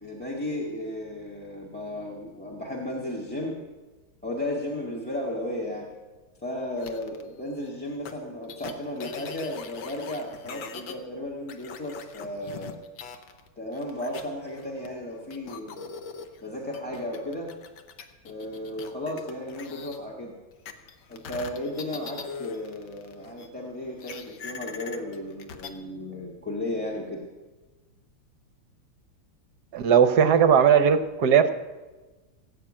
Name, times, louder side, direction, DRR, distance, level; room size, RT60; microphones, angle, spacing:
voice 1, 0.0-3.6 4.2-5.9 6.4-12.8 13.5-15.9 16.4-17.5 18.2-20.3 21.1-27.2, left 1 dB, 5° left, -2 dB, 1.6 m, -34 dB
sound 1, 6.8-7.2 8.1-8.2 8.5-10.9 11.5-13.5 13.7-14.9 15.3-20.0 20.7-23.5 24.0-25.7, left 6 dB, 65° left, 1.7 m, -41 dB
voice 2, 29.7-31.5, right 7 dB, 65° right, 10 dB, 1.1 m, -18 dB
18.0 x 7.4 x 8.8 m, 1.2 s
omnidirectional pair, 2.3 m